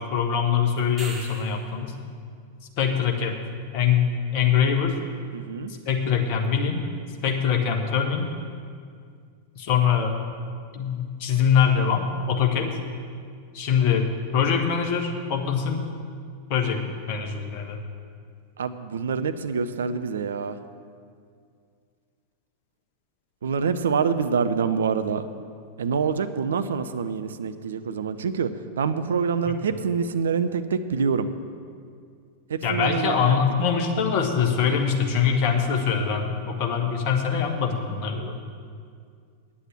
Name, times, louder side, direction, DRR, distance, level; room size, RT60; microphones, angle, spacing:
voice 1, 0.0-2.0 2.8-3.4 3.7-5.0 5.8-6.8 7.2-8.3 9.6-10.2 10.7-12.8 13.5-15.8 16.5-16.8 17.1-17.8 29.5-29.6 32.6-38.4, left 7 dB, 45° left, 3 dB, 1.4 m, -23 dB
sound 1, 0.8-1.8 6.4-6.5, right 2 dB, 15° right, 2.4 m, -39 dB
voice 2, 5.3-5.7 18.6-20.6 23.4-25.2 25.8-28.5 28.8-31.3 32.5-33.4, right 6 dB, 65° right, 11 dB, 0.5 m, -26 dB
9.8 x 8.5 x 7.6 m, 2.2 s
figure-of-eight pair, 90°, 0 cm